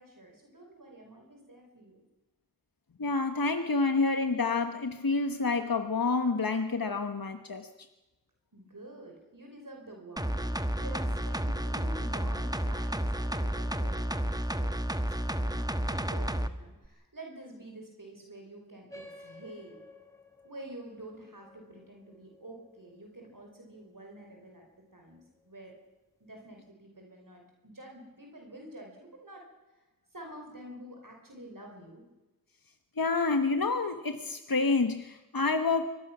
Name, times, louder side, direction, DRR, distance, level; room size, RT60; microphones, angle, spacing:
voice 1, 0.0-2.0 8.5-14.8 15.4-19.8 20.4-24.6 24.9-25.7 26.2-29.5 30.1-32.0, right 1 dB, 70° right, 1 dB, 5.1 m, -48 dB
voice 2, 3.0-7.7 33.0-35.9, left 3 dB, 85° left, 7 dB, 1.2 m, -28 dB
sound 1, 10.2-16.5 16.9-17.0, equal, 10° right, 1.2 m, -31 dB
sound 2, 18.9-23.9, left 1 dB, 10° left, 4.3 m, -53 dB
25.0 x 20.0 x 6.1 m, 1.1 s
wide cardioid pair, 45°, 34 cm